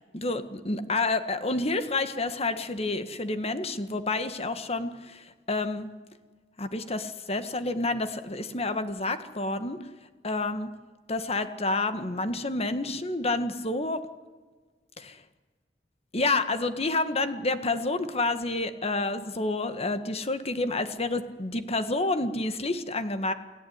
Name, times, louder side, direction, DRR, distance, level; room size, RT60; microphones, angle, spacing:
voice 1, 0.1-5.9 6.6-9.8 10.2-10.7 11.1-14.0 15.0-15.2 16.1-23.3, left 2 dB, 35° left, 9 dB, 1.8 m, -29 dB
29.0 x 17.0 x 9.6 m, 1.4 s
head